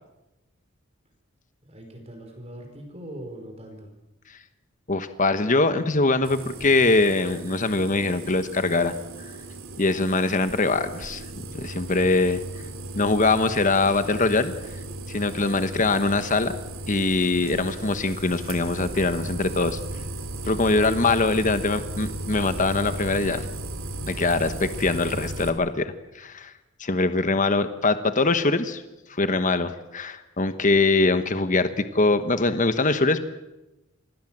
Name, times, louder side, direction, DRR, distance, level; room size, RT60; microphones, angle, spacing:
voice 1, 1.6-3.9, right 1 dB, 30° right, 3 dB, 5.1 m, -41 dB
voice 2, 4.9-8.9 9.8-11.2 11.5-12.4 12.9-14.5 15.1-16.5 16.9-19.8 20.4-23.4 24.1-26.5 26.8-28.8 29.1-33.2, left 3 dB, 40° left, 10 dB, 1.2 m, -23 dB
sound 1, 6.2-25.5, right 2 dB, 75° right, 3.1 m, -36 dB
27.0 x 20.0 x 7.5 m, 0.98 s
head